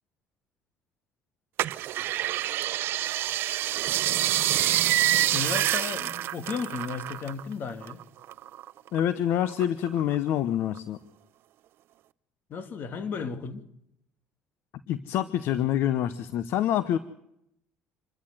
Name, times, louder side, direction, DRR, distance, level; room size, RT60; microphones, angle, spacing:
sound 1, 1.6-7.4 7.7-9.0 9.4-10.3 10.8-10.9, right 13 dB, 65° right, 0.7 m, -27 dB
voice 1, 5.3-8.0 12.5-13.6, left 5 dB, 50° left, 2.5 m, -34 dB
voice 2, 8.9-11.0 14.9-17.0, left 11 dB, 70° left, 0.9 m, -26 dB
27.0 x 13.0 x 7.7 m
supercardioid pair, 90°, 4 cm